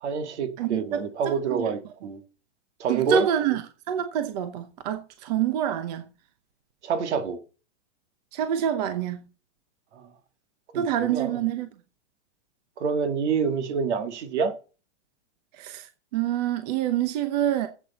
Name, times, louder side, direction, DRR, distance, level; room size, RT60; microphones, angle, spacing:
voice 1, 0.0-2.2 2.8-3.3 6.8-7.4 9.9-10.1 10.7-11.4 12.8-14.5, right 5 dB, 70° right, 2.1 m, -27 dB
voice 2, 0.6-1.0 1.5-1.7 2.9-3.6 3.9-6.0 8.3-9.2 10.7-11.7 15.6-15.9 16.1-17.7, right 10 dB, 35° right, 0.9 m, -26 dB
12.5 x 8.4 x 4.2 m
supercardioid pair, 175°, 35 cm